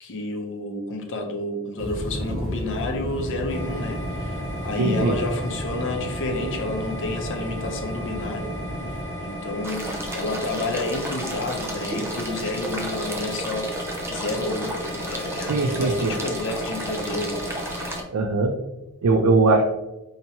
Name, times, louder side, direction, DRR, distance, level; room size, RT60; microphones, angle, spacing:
voice 1, 0.0-8.5 8.9-17.4, left 2 dB, 60° left, 4 dB, 0.6 m, -30 dB
sound 1, 1.8-9.0, equal, 40° right, 1.1 m, -32 dB
sound 2, 3.5-18.0, equal, 35° left, 1.5 m, -35 dB
voice 2, 4.8-5.1 15.5-16.2 18.1-18.5 19.0-19.6, right 3 dB, 75° right, 4 dB, 0.4 m, -20 dB
sound 3, 9.6-18.0, right 1 dB, 10° right, 0.4 m, -33 dB
4.5 x 2.9 x 2.8 m, 1.0 s
head